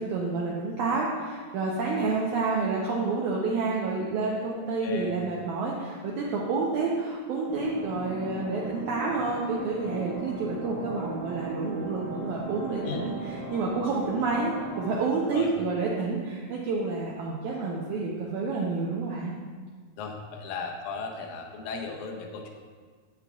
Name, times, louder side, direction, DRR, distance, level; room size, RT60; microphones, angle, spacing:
voice 1, 0.0-19.4, right 3 dB, 80° right, -3 dB, 1.8 m, -29 dB
voice 2, 4.6-5.1 12.9-13.0 15.3-15.5 20.0-22.5, left 4 dB, 75° left, 1 dB, 1.8 m, -36 dB
sound 1, 7.5-15.0, right 3 dB, 45° left, 1.4 m, -37 dB
8.0 x 5.9 x 2.3 m, 1.5 s
omnidirectional pair, 3.9 m